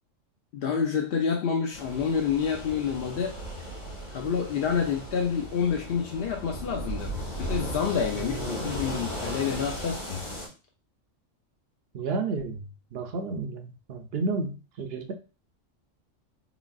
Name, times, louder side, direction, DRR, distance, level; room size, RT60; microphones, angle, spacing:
voice 1, 0.5-3.4 4.1-10.2, left 6 dB, 60° left, 2 dB, 0.7 m, -28 dB
sound 1, 1.7-10.5, equal, 85° left, 2.3 m, -36 dB
voice 2, 8.2-8.7 11.9-12.6 12.9-15.1, right 3 dB, 60° right, 7 dB, 0.7 m, -32 dB
3.9 x 3.6 x 2.3 m, 0.33 s
omnidirectional pair, 1.3 m